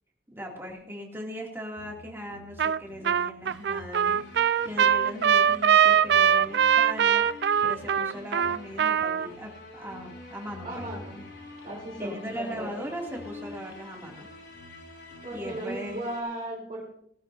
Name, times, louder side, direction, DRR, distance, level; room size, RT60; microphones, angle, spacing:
voice 1, 0.3-7.3 7.6-10.9 12.0-14.3 15.3-16.1, equal, 15° right, -1 dB, 2.6 m, -39 dB
sound 1, 1.8-16.2, left 2 dB, 75° left, 3.4 m, -46 dB
Trumpet, 2.6-2.8 3.0-9.3, right 8 dB, 70° right, 0.4 m, -22 dB
voice 2, 10.6-11.2 11.6-12.7 15.2-16.9, right 1 dB, 35° right, -5 dB, 4.0 m, -36 dB
19.0 x 14.0 x 2.7 m, 0.72 s
head